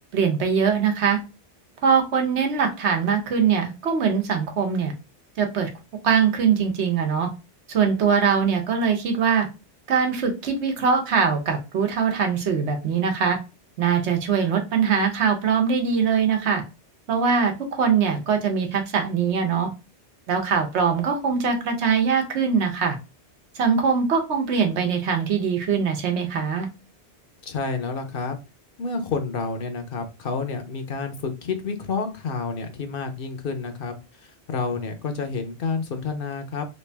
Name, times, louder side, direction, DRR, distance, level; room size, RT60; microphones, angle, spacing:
voice 1, 0.1-1.2 1.8-4.9 5.4-5.7 6.0-7.3 7.7-9.5 9.9-13.4 13.8-16.6 17.1-19.7 20.3-23.0 23.5-26.7, right 6 dB, 75° right, 4 dB, 1.1 m, -22 dB
voice 2, 27.4-28.4 28.8-33.9 34.2-36.7, left 4 dB, 60° left, 7 dB, 0.7 m, -29 dB
3.1 x 2.6 x 3.3 m, 0.30 s
omnidirectional pair, 1.2 m